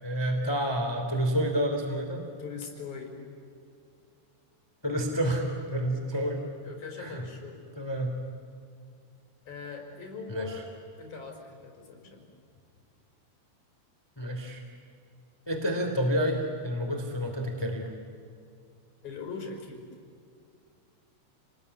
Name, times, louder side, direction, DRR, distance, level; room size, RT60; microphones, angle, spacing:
voice 1, 0.0-2.2 4.8-6.4 7.0-7.2 7.8-8.1 10.3-10.6 14.2-14.6 15.5-17.9, equal, 10° left, 4 dB, 1.9 m, -29 dB
voice 2, 2.4-3.1 6.6-7.6 9.5-10.6 11.0-12.3 19.0-19.8, left 5 dB, 40° left, 2 dB, 5.8 m, -41 dB
30.0 x 20.0 x 9.7 m, 2.4 s
omnidirectional pair, 5.5 m